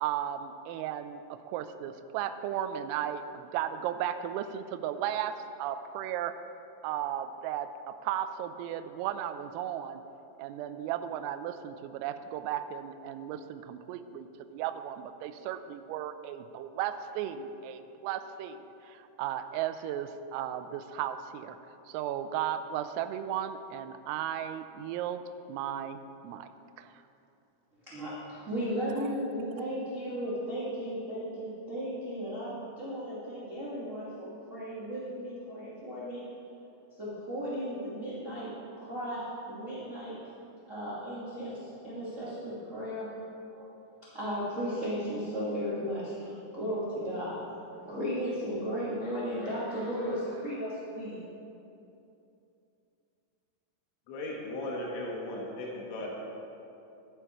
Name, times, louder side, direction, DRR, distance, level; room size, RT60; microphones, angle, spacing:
voice 1, 0.0-6.4 6.8-10.0 10.4-18.6 18.8-21.6 21.9-25.2 25.5-26.5 26.8-26.9, right 10 dB, 90° right, 10 dB, 3.3 m, -35 dB
voice 2, 27.8-36.2 36.9-40.2 40.7-43.1 43.5-43.7 44.0-47.4 47.8-51.2, equal, 35° right, -10 dB, 1.3 m, -35 dB
voice 3, 54.1-56.1, left 1 dB, 75° left, -2 dB, 4.1 m, -36 dB
12.5 x 11.5 x 4.6 m, 2.8 s
omnidirectional pair, 5.9 m